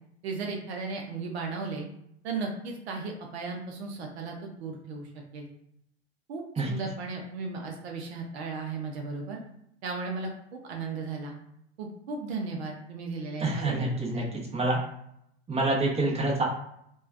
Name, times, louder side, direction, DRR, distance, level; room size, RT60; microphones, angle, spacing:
voice 1, 0.2-1.9 2.2-5.5 6.3-9.4 9.8-11.3 11.8-13.9 14.1-14.3, right 4 dB, 70° right, 2 dB, 0.6 m, -35 dB
voice 2, 13.4-14.2 14.5-14.8 15.5-16.4, right 2 dB, 20° right, -2 dB, 0.9 m, -27 dB
3.1 x 2.2 x 2.4 m, 0.74 s
hypercardioid pair, 80°, 33 cm